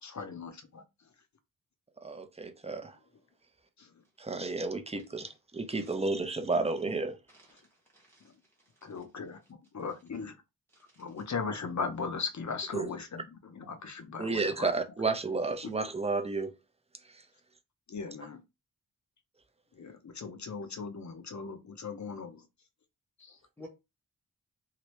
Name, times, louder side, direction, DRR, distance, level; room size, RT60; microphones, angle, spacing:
voice 1, 0.0-0.8 3.8-3.9 8.2-8.3 8.8-9.4 9.7-10.4 11.0-14.7 17.9-18.4 19.7-22.4 23.2-23.4, left 5 dB, 50° left, 0.7 m, -38 dB
voice 2, 2.0-2.9 4.2-7.2 12.7-12.9 14.2-16.5, right 3 dB, 20° right, 0.5 m, -32 dB
voice 3, 7.3-7.7 7.9-8.3 10.7-11.0 23.6-23.7, left 1 dB, 5° left, 0.8 m, -53 dB
2.9 x 2.6 x 3.1 m
wide cardioid pair, 105°, 36 cm